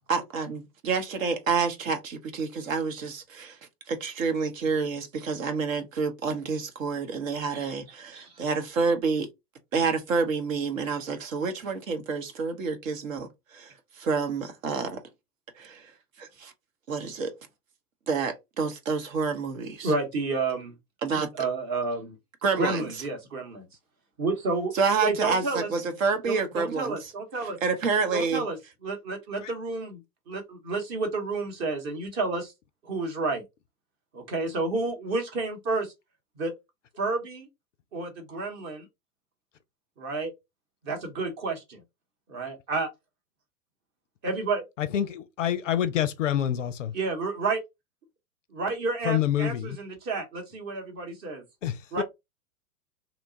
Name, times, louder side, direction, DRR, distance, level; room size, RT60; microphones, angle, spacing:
voice 1, 0.1-3.6 3.9-9.3 9.7-15.0 15.6-15.9 16.2-16.5 16.9-17.3 18.1-19.9 21.0-21.3 22.4-22.9 24.7-26.9 27.4-28.4, right 5 dB, 55° right, 0.8 m, -28 dB
voice 2, 19.8-20.7 21.4-22.1 22.6-23.7 24.2-24.7 25.0-25.7 26.3-27.6 28.1-28.6 28.8-30.0 30.3-32.5 32.8-33.4 34.1-35.9 36.4-36.5 37.0-37.5 37.9-38.9 40.0-40.3 40.8-41.8 42.3-42.9 44.2-44.6 46.9-47.6 48.5-51.4 51.9-52.0, right 3 dB, 20° right, 0.8 m, -30 dB
voice 3, 44.8-46.9 49.0-49.8 51.6-52.0, left 10 dB, 55° left, 0.5 m, -27 dB
2.8 x 2.2 x 2.6 m
figure-of-eight pair, 105°, 47 cm